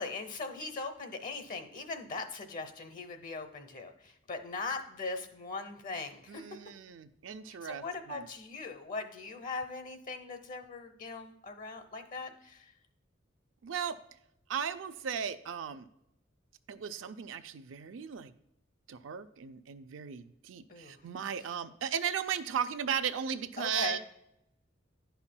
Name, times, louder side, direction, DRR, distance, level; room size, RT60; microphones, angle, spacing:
voice 1, 0.0-6.4 7.5-12.7 20.7-21.0 23.6-24.0, left 3 dB, 45° left, 8 dB, 0.7 m, -40 dB
voice 2, 6.3-8.3 13.6-14.0 14.5-15.9 16.7-18.3 18.9-24.0, right 7 dB, 90° right, 10 dB, 0.4 m, -36 dB
10.5 x 5.7 x 2.2 m, 0.78 s
head